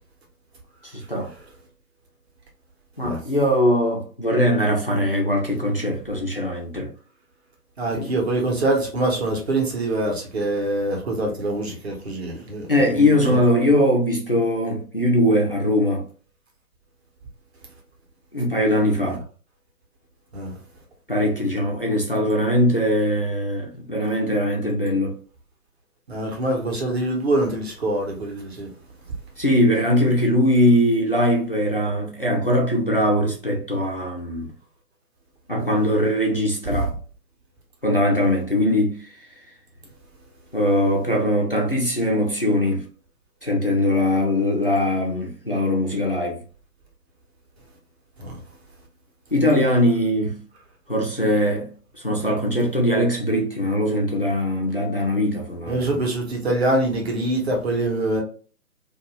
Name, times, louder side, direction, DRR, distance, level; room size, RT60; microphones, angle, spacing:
voice 1, 0.8-1.3 3.0-6.9 8.0-8.1 12.7-16.0 18.3-19.2 21.1-25.2 29.4-34.5 35.5-36.9 37.8-39.0 40.5-42.9 43.4-46.4 49.3-50.4 50.9-51.7 52.0-56.0, left 1 dB, 40° left, 0.4 m, -21 dB
voice 2, 7.8-12.6 12.9-13.7 19.1-19.2 20.3-20.5 26.1-28.7 48.2-48.3 55.7-58.2, right 2 dB, 40° right, 1.0 m, -24 dB
2.6 x 2.3 x 2.9 m
figure-of-eight pair, 145°, 47 cm